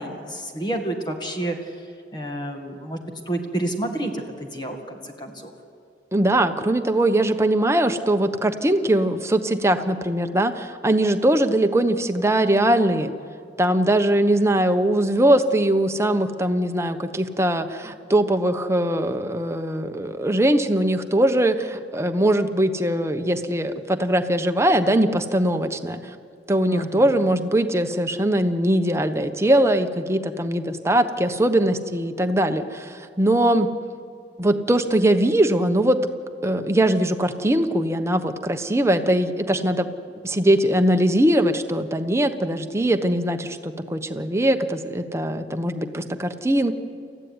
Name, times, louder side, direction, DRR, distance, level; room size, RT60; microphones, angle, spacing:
voice 1, 0.0-1.8 2.1-3.0 3.3-5.5 26.7-27.0, right 1 dB, 25° left, 3 dB, 2.0 m, -29 dB
voice 2, 6.1-13.1 13.6-26.2 26.5-33.7 34.4-36.0 36.4-39.9 40.2-46.7, right 1 dB, 15° right, 7 dB, 1.1 m, -21 dB
28.0 x 15.0 x 9.7 m, 2.3 s
head